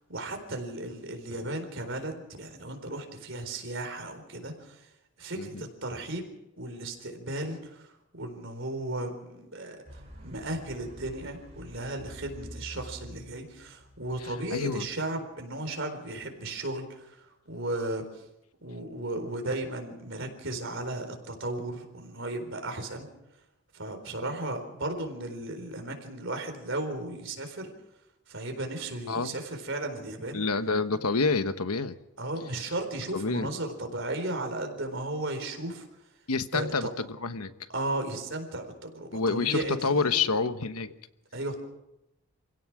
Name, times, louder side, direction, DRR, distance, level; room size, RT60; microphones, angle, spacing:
voice 1, 0.1-4.9 5.2-6.3 6.6-18.2 18.6-23.1 23.7-27.7 28.3-30.4 32.2-35.9 36.5-36.9 37.7-40.2 41.3-41.6, right 2 dB, 55° right, 4.1 m, -35 dB
voice 2, 5.4-5.7 14.5-14.9 29.1-29.3 30.3-31.9 33.1-33.5 36.3-37.5 39.1-40.9, left 4 dB, 85° left, 1.2 m, -28 dB
sound 1, 9.8-14.9, equal, 30° right, 5.5 m, -47 dB
27.0 x 17.0 x 6.2 m
head